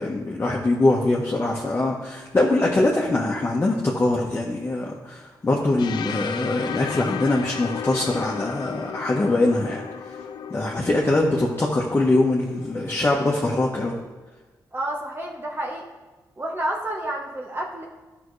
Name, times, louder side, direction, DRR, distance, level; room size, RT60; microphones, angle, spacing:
voice 1, 0.0-9.8 10.5-14.0, left 2 dB, 30° left, -3 dB, 1.2 m, -23 dB
sound 1, 5.8-13.6, left 8 dB, 80° left, 0.4 m, -35 dB
voice 2, 14.7-15.8 16.4-17.9, right 1 dB, 30° right, -1 dB, 1.2 m, -29 dB
12.5 x 5.9 x 3.2 m, 1.2 s
cardioid pair, 75°, 7 cm